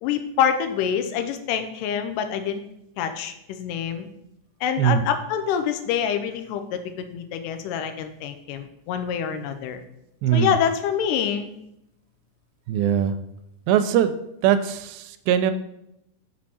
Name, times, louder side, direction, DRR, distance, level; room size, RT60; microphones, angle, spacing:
voice 1, 0.0-2.6 3.0-4.1 4.6-9.8 10.3-11.5, left 8 dB, 80° left, 8 dB, 2.0 m, -26 dB
voice 2, 10.2-10.5 12.7-13.2 13.7-14.1 14.4-15.5, right 9 dB, 90° right, 10 dB, 2.4 m, -21 dB
6.0 x 4.4 x 4.2 m, 0.82 s
omnidirectional pair, 4.1 m